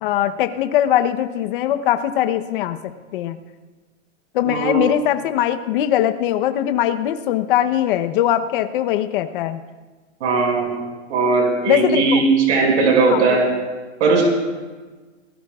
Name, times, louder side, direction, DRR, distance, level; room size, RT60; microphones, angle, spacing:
voice 1, 0.0-2.8 3.1-3.4 4.3-9.6 11.7-12.2 13.1-13.4, left 11 dB, 45° left, 8 dB, 1.0 m, -21 dB
voice 2, 4.4-4.9 10.2-10.7 11.1-13.5 14.0-14.2, right 4 dB, 70° right, 0 dB, 6.1 m, -18 dB
26.0 x 17.0 x 2.4 m, 1.3 s
supercardioid pair, 160°, 37 cm